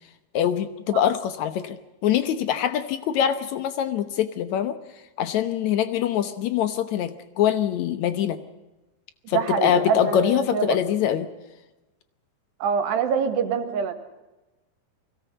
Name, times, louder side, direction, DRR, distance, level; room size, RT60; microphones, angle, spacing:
voice 1, 0.3-4.8 5.2-8.4 9.3-11.3, left 10 dB, 80° left, 11 dB, 1.6 m, -24 dB
voice 2, 9.3-10.8 12.6-13.9, right 6 dB, 85° right, 7 dB, 4.1 m, -25 dB
23.0 x 17.0 x 8.3 m, 1.1 s
omnidirectional pair, 4.7 m